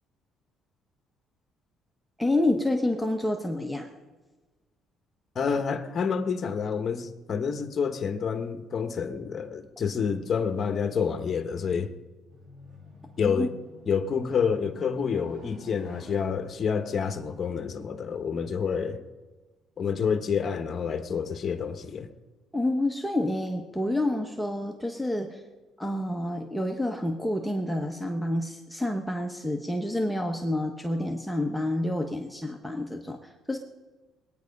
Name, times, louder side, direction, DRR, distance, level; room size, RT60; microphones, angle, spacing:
voice 1, 2.2-3.9 13.2-13.5 22.5-25.4 25.8-33.6, left 1 dB, ahead, 1.1 m, -28 dB
voice 2, 5.3-11.9 13.2-13.5 13.9-19.0 19.8-22.1, left 6 dB, 40° left, 1.2 m, -28 dB
sound 1, 12.3-17.6, equal, 90° right, 2.9 m, -50 dB
21.5 x 9.4 x 5.4 m
cardioid pair, 110°, 0 cm